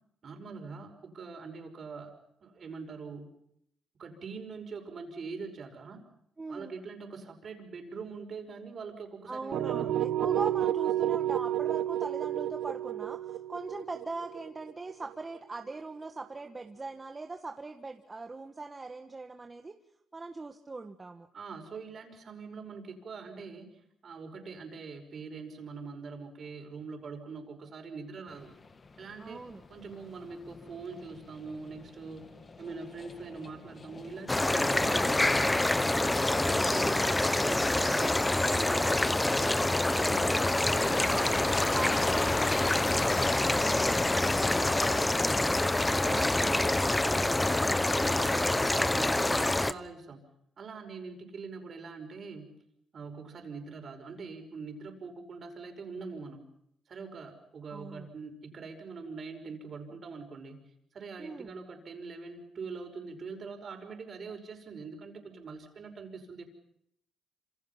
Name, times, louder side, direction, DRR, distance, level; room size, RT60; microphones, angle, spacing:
voice 1, 0.2-2.1 2.4-3.3 4.0-6.0 6.5-9.9 21.3-23.7 24.0-28.5 29.0-32.3 32.6-35.6 35.9-41.3 46.0-50.2 50.6-52.6 52.9-56.5 56.9-66.4, right 4 dB, 50° right, 5 dB, 5.6 m, -43 dB
voice 2, 6.4-6.7 9.3-19.8 20.1-21.3 29.2-29.6 34.7-35.1 36.2-36.8 40.3-45.3 57.7-58.1 61.2-61.5, right 3 dB, 25° right, 5 dB, 1.5 m, -41 dB
sound 1, 9.5-15.4, right 12 dB, 75° right, 0.9 m, -31 dB
sound 2, 28.3-47.6, left 4 dB, 35° left, 1.7 m, -41 dB
sound 3, 34.3-49.7, left 2 dB, 15° left, 1.0 m, -26 dB
27.0 x 26.5 x 5.8 m, 0.73 s
cardioid pair, 90°, 0 cm